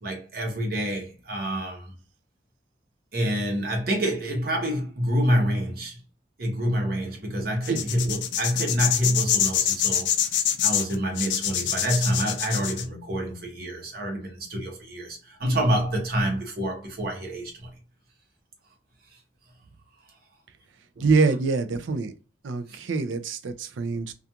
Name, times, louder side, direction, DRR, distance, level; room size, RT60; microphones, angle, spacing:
voice 1, 0.0-1.9 3.1-6.0 6.4-10.1 10.6-17.7 21.0-21.1 22.7-22.8, equal, 50° right, 0.9 m, -27 dB
sound 1, 7.6-12.8, left 10 dB, 70° left, 0.4 m, -25 dB
voice 2, 21.0-22.1 22.4-24.1, right 4 dB, 80° right, 0.4 m, -25 dB
2.4 x 2.3 x 2.7 m
head